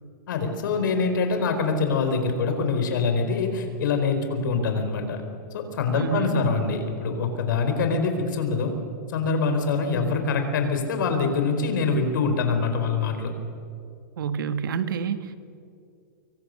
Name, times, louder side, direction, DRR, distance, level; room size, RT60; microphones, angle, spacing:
voice 1, 0.3-5.2 5.5-8.7 9.1-13.3, left 4 dB, 70° left, 6 dB, 4.6 m, -24 dB
voice 2, 5.9-6.6 14.2-15.3, right 6 dB, 80° right, 10 dB, 1.6 m, -28 dB
25.0 x 23.5 x 6.6 m, 2.5 s
supercardioid pair, 165°, 11 cm